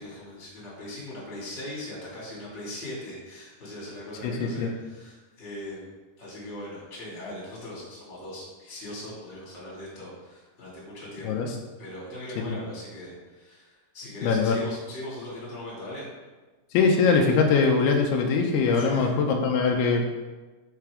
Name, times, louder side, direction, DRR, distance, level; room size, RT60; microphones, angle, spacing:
voice 1, 0.0-11.5 11.8-16.1 18.7-19.1, left 1 dB, 25° left, -6 dB, 1.7 m, -40 dB
voice 2, 4.2-4.7 11.2-11.5 12.4-12.6 14.2-14.6 16.7-20.1, left 4 dB, 90° left, 2 dB, 2.6 m, -22 dB
5.8 x 4.2 x 4.7 m, 1.2 s
omnidirectional pair, 4.4 m